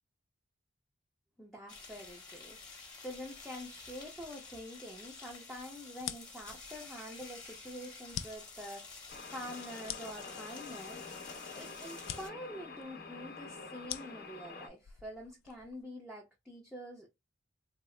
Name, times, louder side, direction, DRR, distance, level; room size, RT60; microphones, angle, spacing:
voice 1, 1.4-2.6 3.0-9.0 9.3-11.1 11.5-17.1, equal, ahead, 0.6 m, -46 dB
sound 1, 1.7-12.3, left 4 dB, 20° left, 1.1 m, -50 dB
sound 2, 5.9-15.8, left 11 dB, 85° left, 0.3 m, -47 dB
sound 3, 9.1-14.7, left 4 dB, 50° left, 0.8 m, -47 dB
3.7 x 2.0 x 3.1 m
head